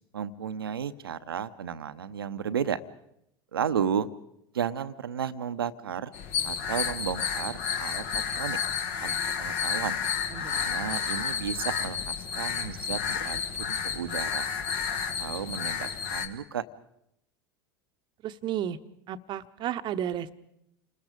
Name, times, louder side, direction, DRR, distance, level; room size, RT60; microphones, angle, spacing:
voice 1, 0.1-2.8 3.5-4.1 4.5-6.1 6.4-8.6 9.0-10.0 10.5-14.5 15.2-16.6, right 8 dB, 75° right, 12 dB, 0.9 m, -33 dB
sound 1, 6.1-16.3, left 7 dB, 50° left, 1.7 m, -31 dB
voice 2, 10.3-10.8 18.2-18.8 19.1-20.3, right 10 dB, 40° right, 11 dB, 1.0 m, -33 dB
29.0 x 20.5 x 5.2 m, 0.78 s
figure-of-eight pair, 80°, 12 cm